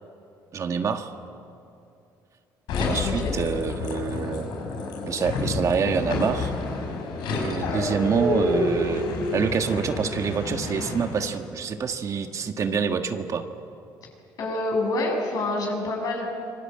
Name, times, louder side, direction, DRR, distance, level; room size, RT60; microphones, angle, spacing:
voice 1, 0.5-1.1 2.8-4.5 5.0-6.5 7.3-9.1 9.3-13.4, right 6 dB, 45° right, 6 dB, 1.6 m, -26 dB
sound 1, 2.7-11.4, left 3 dB, 85° left, 5.8 m, -29 dB
voice 2, 2.7-3.3 14.4-16.3, left 2 dB, 55° left, 0 dB, 7.9 m, -27 dB
26.0 x 22.5 x 8.8 m, 2.6 s
cardioid pair, 105°, 8 cm